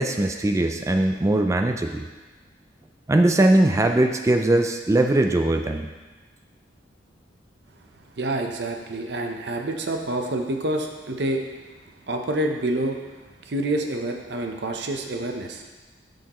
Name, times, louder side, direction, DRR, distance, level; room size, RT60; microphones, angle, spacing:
voice 1, 0.0-2.1 3.1-5.9, right 1 dB, 15° right, 5 dB, 0.3 m, -20 dB
voice 2, 8.2-11.5 12.1-13.0 13.4-15.6, right 1 dB, 65° right, 3 dB, 0.7 m, -27 dB
8.4 x 6.3 x 3.0 m, 1.2 s
head